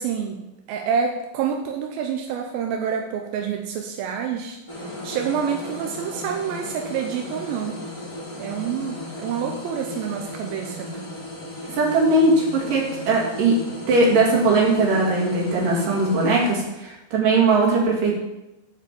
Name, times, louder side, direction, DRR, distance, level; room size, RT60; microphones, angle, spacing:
voice 1, 0.0-4.6 5.0-7.7 8.4-11.1, right 7 dB, 90° right, 3 dB, 2.5 m, -27 dB
sound 1, 4.7-16.5, left 1 dB, 10° left, 2.1 m, -36 dB
voice 2, 11.7-13.6 13.9-18.2, right 3 dB, 70° right, -3 dB, 3.7 m, -19 dB
8.5 x 5.0 x 7.0 m, 0.97 s
omnidirectional pair, 4.2 m